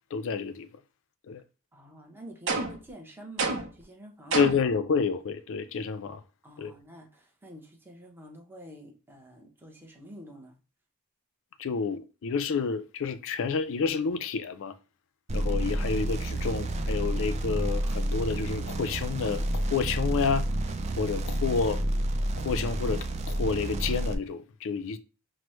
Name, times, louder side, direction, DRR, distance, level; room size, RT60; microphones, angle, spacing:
voice 1, 0.1-0.7 1.3-1.4 4.3-6.2 6.6-6.7 11.6-14.7 15.3-20.5 21.0-21.8 22.4-25.0, left 5 dB, 60° left, 0.4 m, -29 dB
voice 2, 1.7-4.5 6.4-10.6, right 1 dB, 10° right, 0.8 m, -48 dB
sound 1, 2.5-2.9 3.4-3.8 4.3-4.7, right 3 dB, 60° right, 0.8 m, -29 dB
sound 2, 15.3-24.2, right 1 dB, 30° right, 0.4 m, -29 dB
6.0 x 2.1 x 3.1 m
head